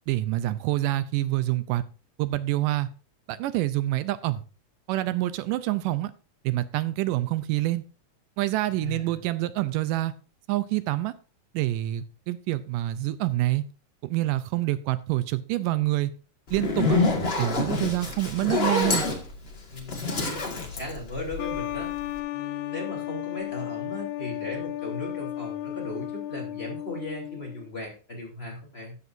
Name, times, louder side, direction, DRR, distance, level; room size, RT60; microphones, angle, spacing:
voice 1, 0.1-1.8 2.2-2.9 3.3-4.4 4.9-6.1 6.4-7.8 8.4-10.1 10.5-11.1 11.5-13.7 14.0-16.1 16.5-17.0 17.4-19.1, right 16 dB, 85° right, 14 dB, 2.2 m, -26 dB
voice 2, 8.7-9.1 19.7-21.9 22.3-29.0, left 1 dB, 20° left, -3 dB, 3.2 m, -37 dB
Zipper (clothing), 16.5-21.7, left 3 dB, 50° left, 0.7 m, -26 dB
sound 1, 21.4-27.7, left 14 dB, 80° left, 1.9 m, -34 dB
14.0 x 8.2 x 2.6 m, 0.35 s
omnidirectional pair, 3.8 m